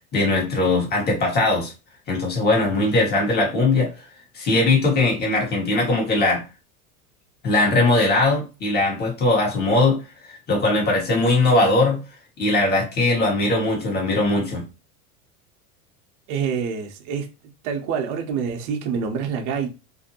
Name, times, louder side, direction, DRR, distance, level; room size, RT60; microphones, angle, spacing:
voice 1, 0.1-1.7 2.1-4.1 4.3-6.4 7.4-12.0 12.4-14.6, left 2 dB, 20° left, 1.1 m, -20 dB
voice 2, 16.3-17.3 17.6-19.7, right 6 dB, 45° right, 0.7 m, -26 dB
2.6 x 2.1 x 2.7 m
supercardioid pair, 110°, 44 cm